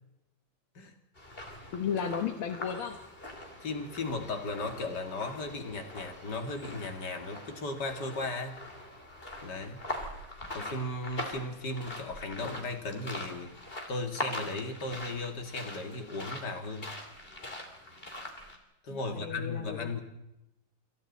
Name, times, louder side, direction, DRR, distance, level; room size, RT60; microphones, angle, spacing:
sound 1, 1.2-18.6, left 1 dB, 25° left, 3.3 m, -43 dB
voice 1, 1.7-3.0 18.9-20.0, left 7 dB, 75° left, 5 dB, 2.1 m, -34 dB
voice 2, 3.6-8.6 9.4-9.8 10.5-13.5 13.9-16.9 18.8-20.0, left 2 dB, 50° left, 4 dB, 2.9 m, -36 dB
27.5 x 27.5 x 4.2 m, 0.89 s
omnidirectional pair, 2.3 m